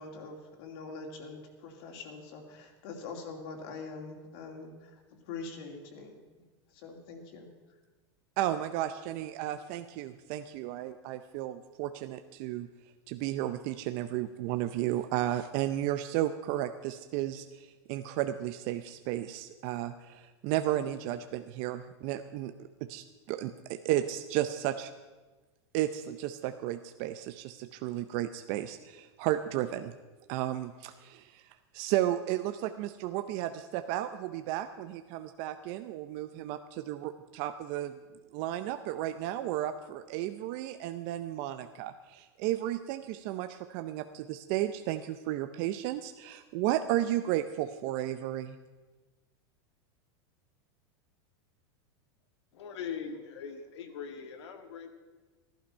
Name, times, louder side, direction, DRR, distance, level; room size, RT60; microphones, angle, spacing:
voice 1, 0.0-6.2 6.7-7.5, left 4 dB, 60° left, 1 dB, 2.7 m, -44 dB
voice 2, 8.4-12.7 13.1-22.5 22.8-24.9 25.7-29.9 30.3-38.0 38.3-48.6, right 13 dB, 50° right, 9 dB, 0.6 m, -33 dB
voice 3, 52.5-54.9, left 6 dB, 90° left, 5 dB, 1.9 m, -41 dB
14.5 x 12.0 x 5.5 m, 1.2 s
supercardioid pair, 150°, 14 cm